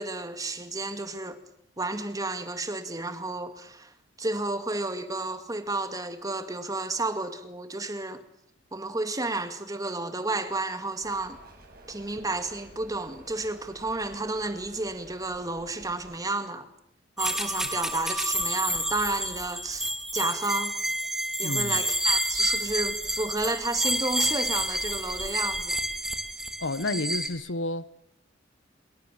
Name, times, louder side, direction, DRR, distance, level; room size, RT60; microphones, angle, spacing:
voice 1, 0.0-1.4 1.8-3.9 4.2-8.2 8.7-11.4 11.9-16.7 17.2-20.8 21.4-25.8, right 2 dB, 20° right, 2.3 m, -31 dB
sound 1, 11.0-16.2, right 1 dB, 50° right, 7.3 m, -51 dB
sound 2, 17.2-27.3, right 1 dB, ahead, 3.2 m, -29 dB
voice 2, 21.4-21.8 26.6-27.9, left 2 dB, 80° left, 1.4 m, -30 dB
27.5 x 23.0 x 7.6 m
head